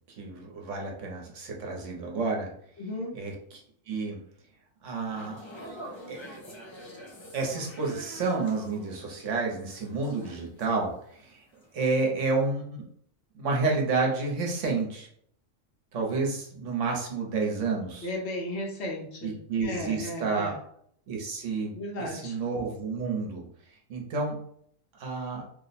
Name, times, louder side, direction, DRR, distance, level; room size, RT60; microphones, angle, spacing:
voice 1, 0.2-2.5 3.1-3.6 3.9-4.2 4.8-5.4 6.1-6.2 7.3-11.4 11.7-12.8 13.3-15.1 15.9-18.1 19.2-20.5 21.1-23.5 23.9-24.4 25.0-25.4, right 3 dB, 70° right, 0 dB, 1.1 m, -30 dB
voice 2, 2.8-3.1 18.0-20.5 21.7-22.4, left 1 dB, 60° left, -1 dB, 1.0 m, -35 dB
sound 1, 5.0-11.2 11.5-11.8, right 1 dB, 35° left, 0.5 m, -46 dB
2.9 x 2.1 x 4.0 m, 0.65 s
omnidirectional pair, 1.3 m